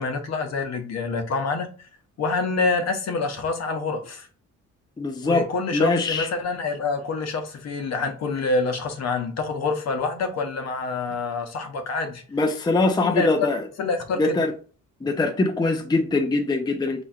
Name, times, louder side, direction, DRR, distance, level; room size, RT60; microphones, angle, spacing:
voice 1, 0.0-1.9 2.2-4.3 5.2-12.2 13.0-13.5 13.8-14.4, left 3 dB, 60° left, 0.9 m, -26 dB
voice 2, 5.0-5.5 5.7-6.3 12.3-13.6 14.2-14.5 15.0-17.0, left 2 dB, 15° left, 0.5 m, -22 dB
4.3 x 3.1 x 2.4 m
cardioid pair, 90°, 30 cm